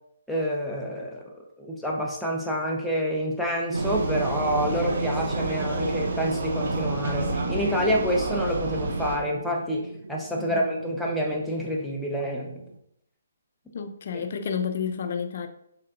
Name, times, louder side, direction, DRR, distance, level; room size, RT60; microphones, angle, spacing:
voice 1, 0.3-1.2 1.6-9.8 10.1-12.6, equal, ahead, -3 dB, 0.8 m, -28 dB
Vehicle, 3.7-9.2, right 2 dB, 55° right, 0.7 m, -30 dB
sound 1, 3.7-12.8, right 3 dB, 85° right, 0.3 m, -35 dB
voice 2, 13.7-15.5, left 6 dB, 50° left, 6 dB, 0.5 m, -30 dB
5.5 x 3.5 x 2.5 m, 0.74 s
figure-of-eight pair, 140°, 0 cm